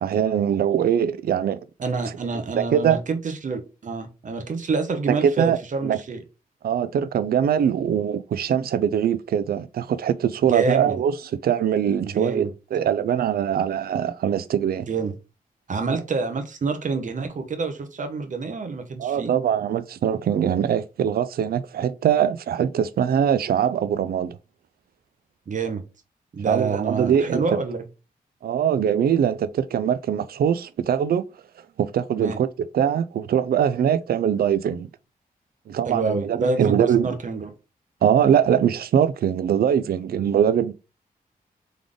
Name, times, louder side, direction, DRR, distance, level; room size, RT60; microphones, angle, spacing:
voice 1, 0.0-1.6 2.6-3.0 5.1-6.0 6.6-14.9 19.0-24.4 26.5-27.4 28.4-31.2 31.8-34.9 35.7-37.2 38.0-40.7, right 9 dB, 85° right, 0.4 m, -22 dB
voice 2, 1.8-6.2 10.5-11.0 12.0-12.5 14.9-15.1 15.7-19.3 25.5-25.8 26.3-27.8 32.2-32.4 35.9-37.5, right 4 dB, 55° right, 1.0 m, -27 dB
3.8 x 3.4 x 3.5 m
cardioid pair, 85°, 15 cm